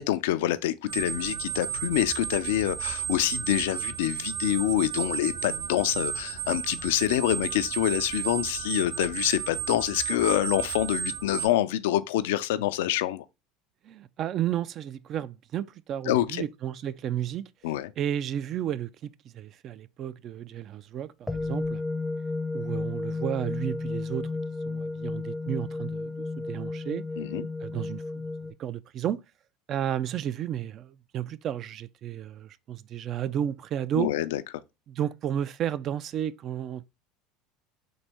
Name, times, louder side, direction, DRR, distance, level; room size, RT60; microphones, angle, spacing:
voice 1, 0.0-13.2 16.1-16.4 17.6-17.9 27.2-27.5 34.0-34.4, left 14 dB, 80° left, 0.3 m, -26 dB
sound 1, 0.9-11.5, right 9 dB, 65° right, 2.0 m, -33 dB
voice 2, 13.8-17.5 18.0-21.8 22.5-24.3 24.7-27.0 27.6-28.2 28.6-29.2 29.7-34.1 34.9-36.8, right 10 dB, 50° right, 0.3 m, -32 dB
sound 2, 21.3-28.5, left 3 dB, 5° left, 0.6 m, -33 dB
4.0 x 2.6 x 3.4 m
hypercardioid pair, 90°, 0 cm